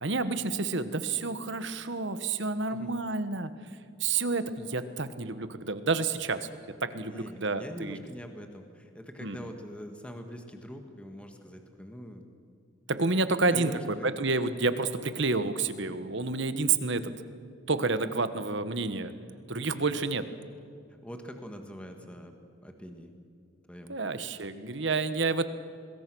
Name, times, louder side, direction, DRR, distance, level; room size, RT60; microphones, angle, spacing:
voice 1, 0.0-3.5 4.0-6.5 6.8-8.0 9.2-9.4 12.9-17.1 17.7-19.1 19.5-20.2 23.9-25.5, right 3 dB, 60° right, 11 dB, 1.4 m, -29 dB
voice 2, 6.9-12.2 13.5-14.1 16.6-16.8 19.3-19.6 21.0-22.3 22.6-23.1 23.7-24.0, equal, 5° left, 5 dB, 1.7 m, -44 dB
25.5 x 21.5 x 6.3 m, 2.4 s
head